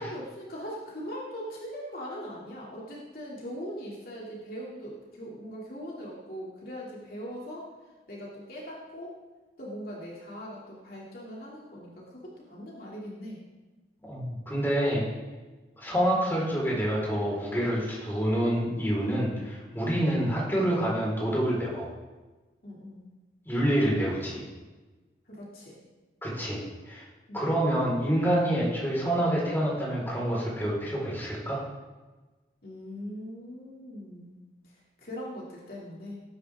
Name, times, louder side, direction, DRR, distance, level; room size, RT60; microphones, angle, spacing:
voice 1, 0.0-7.7 8.1-9.1 9.6-13.4 19.9-20.1 22.6-23.1 25.3-25.8 27.3-27.5 32.6-34.4 35.0-36.1, equal, 55° left, -4 dB, 2.7 m, -40 dB
voice 2, 14.0-15.0 15.8-21.9 23.5-24.4 26.2-27.0 27.3-31.6, right 1 dB, 10° left, -5 dB, 4.5 m, -27 dB
19.5 x 10.0 x 3.6 m, 1.2 s
head